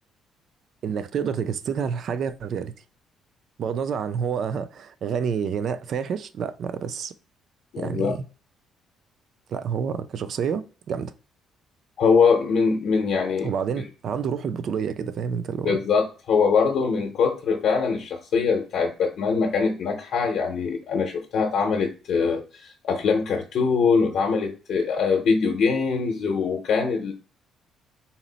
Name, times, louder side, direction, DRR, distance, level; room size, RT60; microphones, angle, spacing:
voice 1, 0.8-2.7 3.6-7.1 7.8-8.2 9.5-11.1 13.4-15.8, right 7 dB, 45° right, 0.3 m, -28 dB
voice 2, 7.7-8.2 12.0-13.5 15.6-27.1, left 5 dB, 55° left, 0.7 m, -23 dB
4.0 x 2.0 x 3.8 m
cardioid pair, 160°, 0 cm